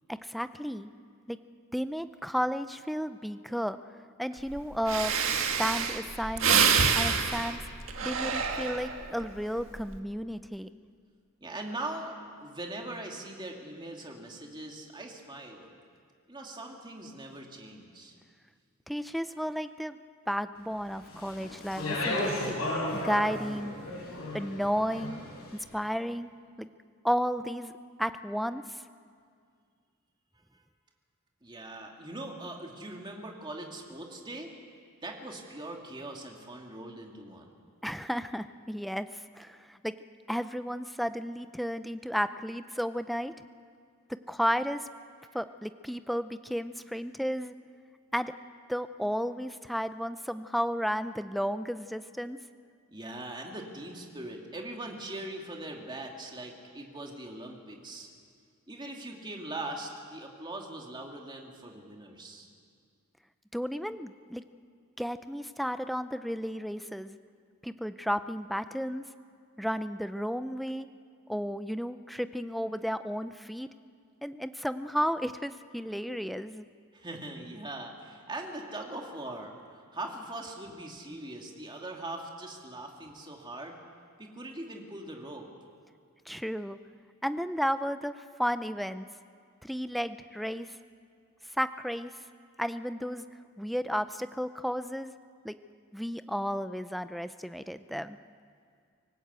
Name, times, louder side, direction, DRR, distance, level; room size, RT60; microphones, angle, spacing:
voice 1, 0.1-0.9 1.3-1.4 1.7-3.8 4.2-5.2 5.6-7.6 8.0-10.7 18.9-20.0 20.3-22.5 22.9-23.8 24.3-25.2 25.5-26.3 26.6-26.7 27.0-27.7 28.0-28.8 37.8-40.0 40.3-43.3 44.1-44.9 45.3-47.5 48.1-48.3 48.7-52.4 63.5-64.4 65.0-67.2 67.6-69.0 69.6-70.9 71.3-73.7 74.2-76.7 86.3-86.8 87.2-89.0 89.6-90.8 91.6-92.2 92.6-93.2 93.6-95.1 95.4-95.5 95.9-98.2, equal, ahead, 11 dB, 0.6 m, -33 dB
Breathing, 4.5-4.6 4.9-9.1 9.6-10.0, right 6 dB, 65° right, 1.8 m, -27 dB
voice 2, 11.4-15.7 16.3-18.2 30.5-30.6 31.4-34.5 35.0-37.5 52.9-58.1 58.7-62.5 76.9-83.8 84.2-85.5, right 2 dB, 20° right, 1 dB, 2.6 m, -41 dB
Speech, 21.1-25.4, left 2 dB, 80° left, 6.7 m, -34 dB
25.5 x 18.5 x 8.2 m, 2.2 s
head